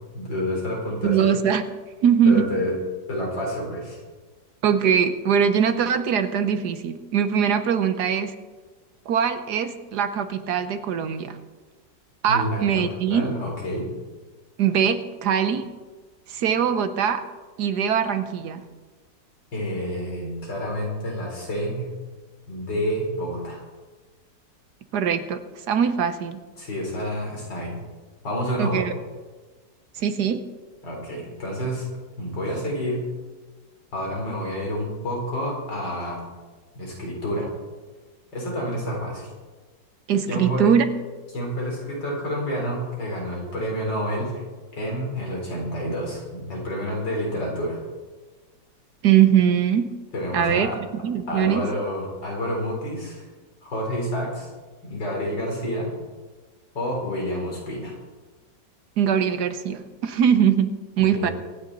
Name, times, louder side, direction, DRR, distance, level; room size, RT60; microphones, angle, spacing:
voice 1, 0.0-1.3 2.3-2.7 3.1-4.0 12.3-12.8 13.1-13.9 19.5-21.9 22.5-23.6 26.6-27.8 28.2-28.9 30.8-31.9 32.2-33.1 33.9-36.2 36.7-37.5 38.3-39.3 40.3-40.7 41.3-44.4 44.7-47.8 50.1-50.8 51.3-53.3 53.6-54.5 54.8-55.9 56.7-57.9 61.0-61.3, equal, 80° left, -2 dB, 4.5 m, -29 dB
voice 2, 1.0-1.6 2.0-2.5 4.6-8.3 9.1-11.4 12.2-13.3 14.6-15.7 16.3-17.2 17.6-18.6 24.9-25.4 25.7-26.4 28.6-28.9 30.0-30.4 40.1-40.8 49.0-49.9 50.3-51.6 59.0-60.7 61.0-61.3, right 8 dB, 70° right, 10 dB, 1.4 m, -21 dB
24.5 x 9.5 x 4.0 m, 1.3 s
omnidirectional pair, 1.9 m